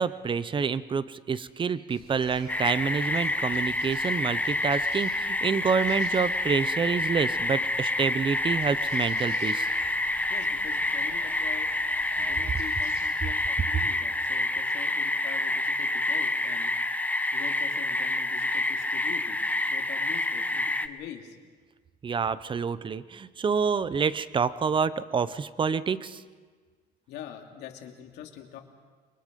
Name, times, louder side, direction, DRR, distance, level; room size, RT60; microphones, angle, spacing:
voice 1, 0.0-9.7 22.0-26.2, right 6 dB, 30° right, 16 dB, 0.8 m, -28 dB
sound 1, 1.9-13.1, right 3 dB, 90° right, 6.5 m, -50 dB
sound 2, 2.5-20.9, left 2 dB, 10° left, 1.0 m, -28 dB
voice 2, 10.3-11.7 12.1-16.7 17.3-19.4 19.7-21.4 27.1-28.6, left 10 dB, 85° left, 3 dB, 2.7 m, -44 dB
29.5 x 23.5 x 5.3 m, 1.5 s
cardioid pair, 110°, 17 cm